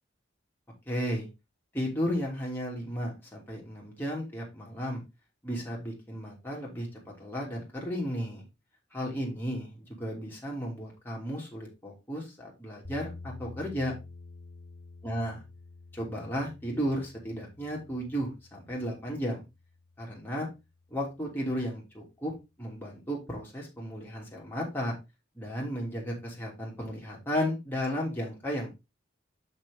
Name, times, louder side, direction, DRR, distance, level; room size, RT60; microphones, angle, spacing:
voice 1, 0.8-1.3 1.7-5.0 5.4-6.9 7.2-8.4 8.9-13.9 15.0-15.4 15.9-19.4 20.0-20.5 20.9-24.9 25.3-28.7, equal, 10° left, -3 dB, 2.8 m, -34 dB
sound 1, 12.8-20.9, left 3 dB, 70° left, 2.2 m, -49 dB
6.2 x 5.9 x 3.8 m, 0.25 s
head